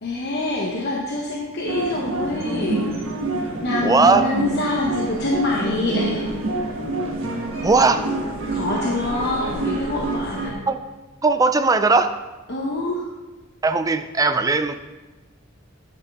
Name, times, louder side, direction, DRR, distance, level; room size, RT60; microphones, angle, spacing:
voice 1, 0.0-2.8 3.6-6.3 8.5-10.6 12.5-13.1, left 2 dB, 55° left, -2 dB, 1.0 m, -25 dB
sound 1, 1.7-10.5, right 2 dB, 90° right, 1.3 m, -27 dB
voice 2, 3.8-4.3 7.6-8.0 10.7-10.8 11.2-12.2 13.6-14.7, right 3 dB, 20° right, 10 dB, 0.4 m, -18 dB
10.0 x 6.1 x 3.6 m, 1.1 s
head